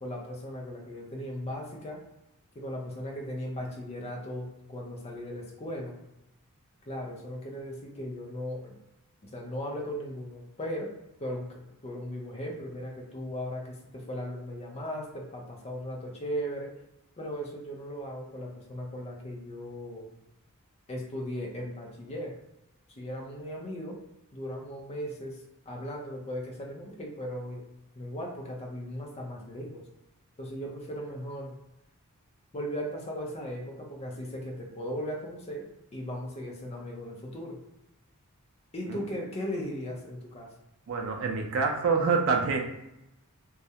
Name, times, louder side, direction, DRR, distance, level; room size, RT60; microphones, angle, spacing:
voice 1, 0.0-2.0 2.5-5.9 6.9-8.7 9.2-10.9 11.2-16.7 17.2-20.1 20.9-22.3 22.9-24.0 24.3-27.6 27.9-29.8 30.4-31.5 32.5-35.7 35.9-37.6 38.7-40.5, equal, 30° left, -1 dB, 0.5 m, -37 dB
voice 2, 40.9-42.6, right 4 dB, 65° right, 3 dB, 0.4 m, -26 dB
2.3 x 2.0 x 2.7 m, 0.88 s
head